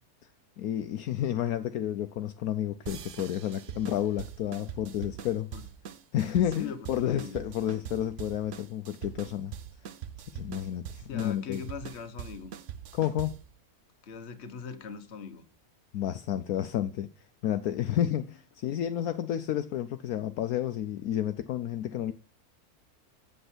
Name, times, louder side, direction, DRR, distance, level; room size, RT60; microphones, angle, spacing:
voice 1, 0.6-5.5 6.1-9.5 10.3-11.7 12.9-13.4 15.9-17.1 17.4-22.1, left 11 dB, 70° left, 1.1 m, -31 dB
sound 1, 2.9-13.5, right 9 dB, 60° right, 0.9 m, -43 dB
voice 2, 6.6-7.4 11.1-12.5 14.0-15.4, left 6 dB, 50° left, 1.2 m, -41 dB
7.9 x 7.8 x 6.1 m
omnidirectional pair, 1.6 m